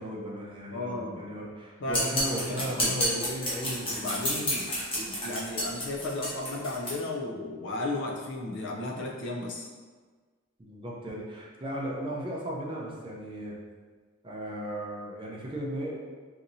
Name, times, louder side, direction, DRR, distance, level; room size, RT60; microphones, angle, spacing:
voice 1, 0.0-4.3 10.6-13.6 14.2-16.0, right 1 dB, 25° right, -3 dB, 0.5 m, -36 dB
voice 2, 0.7-1.3 1.8-3.0 3.9-9.7, left 2 dB, 55° left, 0 dB, 0.4 m, -35 dB
sound 1, 1.9-6.9, equal, 25° left, 0.8 m, -30 dB
4.1 x 2.7 x 2.6 m, 1.4 s
head